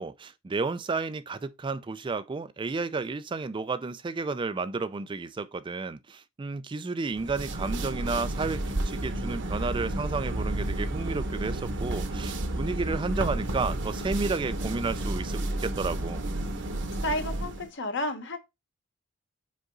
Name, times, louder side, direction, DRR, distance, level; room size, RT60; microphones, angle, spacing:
voice 1, 0.0-16.2, right 4 dB, 25° right, 0.3 m, -32 dB
sound 1, 7.1-17.7, right 1 dB, 60° right, 1.0 m, -31 dB
voice 2, 17.0-18.4, left 1 dB, 60° left, 1.2 m, -31 dB
5.3 x 4.9 x 3.8 m
head